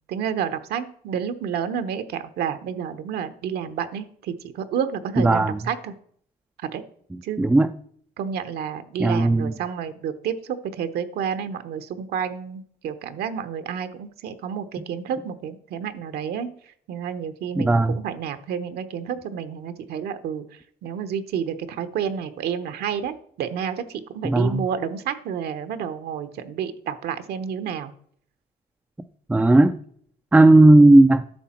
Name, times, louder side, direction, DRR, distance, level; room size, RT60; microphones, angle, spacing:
voice 1, 0.1-5.9 6.7-6.8 7.2-7.4 8.2-16.5 16.9-20.4 20.8-23.8 24.1-27.9, right 8 dB, 70° right, 10 dB, 0.9 m, -30 dB
voice 2, 5.2-5.6 7.1-7.7 9.0-9.5 17.6-18.0 24.2-24.7 29.3-29.8 30.3-31.2, right 2 dB, 5° right, 7 dB, 0.4 m, -15 dB
11.5 x 6.7 x 4.4 m, 0.62 s
cardioid pair, 110°, 17 cm